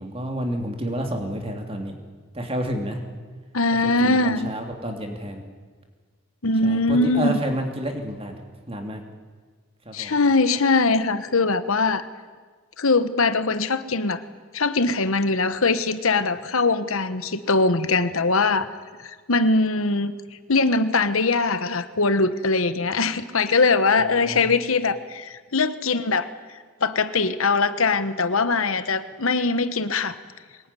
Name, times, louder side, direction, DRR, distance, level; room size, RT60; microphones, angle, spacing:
voice 1, 0.0-2.0 2.3-3.0 3.7-5.4 6.6-9.0 9.8-10.2 24.0-24.6, equal, 25° right, 4 dB, 2.8 m, -30 dB
voice 2, 3.5-4.5 6.4-7.3 9.9-12.0 12.8-14.2 14.5-18.7 19.0-20.1 20.5-26.3 26.8-30.1, left 3 dB, 70° left, 12 dB, 1.2 m, -21 dB
23.5 x 20.5 x 9.9 m, 1.5 s
head